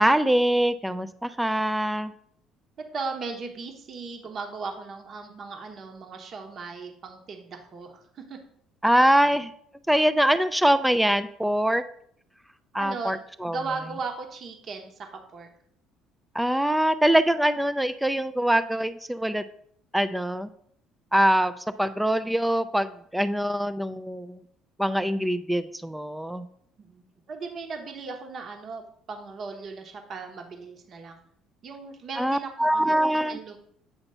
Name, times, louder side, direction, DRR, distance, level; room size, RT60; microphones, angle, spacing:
voice 1, 0.0-2.1 8.8-9.5 9.9-11.8 12.7-13.6 16.3-19.4 19.9-20.5 21.1-24.4 24.8-26.4 32.2-33.4, equal, 5° right, 12 dB, 0.3 m, -23 dB
voice 2, 2.8-8.4 9.2-9.3 12.7-13.1 13.5-15.5 26.8-31.2 31.6-32.9 33.3-33.6, right 4 dB, 45° right, 4 dB, 1.0 m, -37 dB
7.9 x 2.9 x 5.4 m, 0.66 s
cardioid pair, 105°, 0 cm